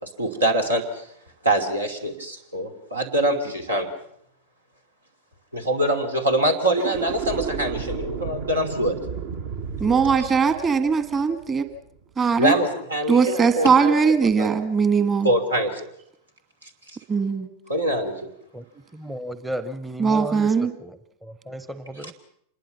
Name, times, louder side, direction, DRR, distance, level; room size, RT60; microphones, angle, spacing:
voice 1, 0.0-0.8 1.4-3.9 5.5-9.0 10.2-10.3 12.4-13.9 14.2-14.6 15.2-15.8 17.7-18.3, right 1 dB, 80° right, 5 dB, 2.8 m, -24 dB
sound 1, 6.6-11.9, right 6 dB, 55° right, 1.6 m, -33 dB
voice 2, 9.8-11.6 12.2-12.5 13.1-15.3 17.1-17.5 20.0-20.7, right 5 dB, 20° right, 9 dB, 1.7 m, -20 dB
voice 3, 18.9-22.1, right 1 dB, 5° right, 11 dB, 0.9 m, -34 dB
26.5 x 21.0 x 5.8 m, 0.72 s
figure-of-eight pair, 90°, 0 cm